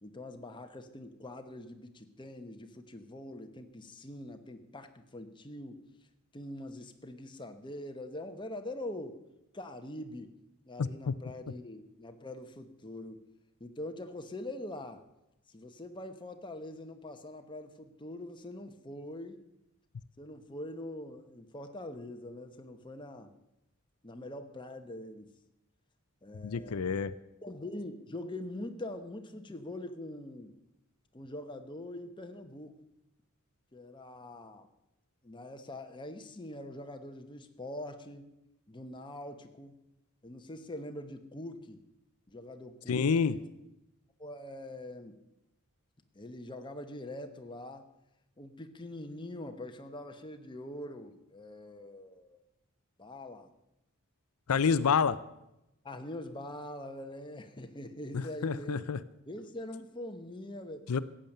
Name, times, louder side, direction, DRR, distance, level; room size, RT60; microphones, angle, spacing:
voice 1, 0.0-5.8 6.3-9.2 9.5-10.3 10.6-13.2 13.6-15.0 15.5-19.4 20.2-23.3 24.0-25.3 26.2-26.8 27.4-30.5 31.1-32.8 33.7-34.7 35.2-38.3 38.7-39.8 40.2-41.8 42.3-43.5 44.2-45.2 46.1-47.9 48.4-52.4 53.0-53.5 55.8-58.8 59.3-60.9, left 1 dB, 20° left, 6 dB, 1.0 m, -43 dB
voice 2, 10.8-11.1 26.4-27.1 42.9-43.3 54.5-55.2 58.1-59.0 60.9-61.0, left 6 dB, 85° left, 15 dB, 0.5 m, -28 dB
14.5 x 8.9 x 6.6 m, 0.89 s
head